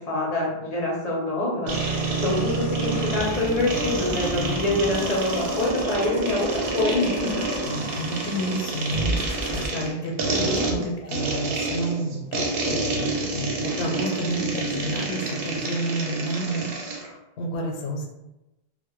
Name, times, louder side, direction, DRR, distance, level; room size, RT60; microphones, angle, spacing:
voice 1, 0.0-7.4 10.3-11.0, left 2 dB, 55° left, -3 dB, 0.5 m, -26 dB
sound 1, 1.7-9.7, right 2 dB, 10° right, 0.5 m, -30 dB
sound 2, 1.7-17.1, right 3 dB, 70° right, 0.7 m, -29 dB
voice 2, 7.7-18.1, right 1 dB, 90° left, 1 dB, 0.8 m, -30 dB
2.1 x 2.0 x 2.9 m, 0.96 s
omnidirectional pair, 1.1 m